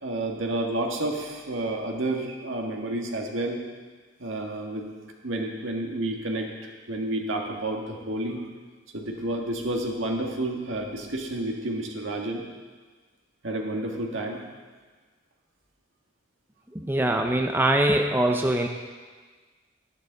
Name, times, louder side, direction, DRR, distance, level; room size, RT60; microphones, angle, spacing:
voice 1, 0.0-3.6 4.2-4.9 5.2-8.4 8.9-12.4 13.4-14.4, right 1 dB, 70° right, 1 dB, 1.6 m, -30 dB
voice 2, 16.7-18.7, right 1 dB, 10° right, 3 dB, 0.5 m, -23 dB
12.5 x 11.0 x 4.0 m, 1.4 s
head